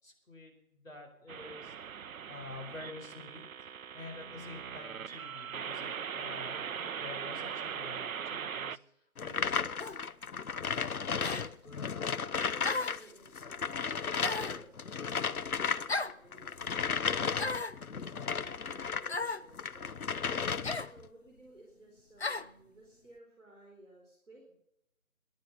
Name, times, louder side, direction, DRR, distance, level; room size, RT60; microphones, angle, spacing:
voice 1, 0.0-1.7 2.3-10.0, left 3 dB, 65° left, 2 dB, 4.9 m, -49 dB
sound 1, 1.3-8.8, right 7 dB, 75° right, 0.6 m, -40 dB
sound 2, 9.2-13.0 13.3-19.2 19.5-21.0, left 6 dB, 85° left, 0.8 m, -34 dB
sound 3, 9.8-10.0 11.2-11.5 12.6-13.1 14.2-14.6 15.9-16.2 17.3-17.8 19.1-19.5 20.6-20.9 22.2-22.5, left 3 dB, 50° left, 0.5 m, -35 dB
voice 2, 10.7-17.2 17.9-19.9 20.8-24.4, right 2 dB, ahead, -19 dB, 2.6 m, -57 dB
18.5 x 10.5 x 5.6 m, 0.78 s
figure-of-eight pair, 175°, 42 cm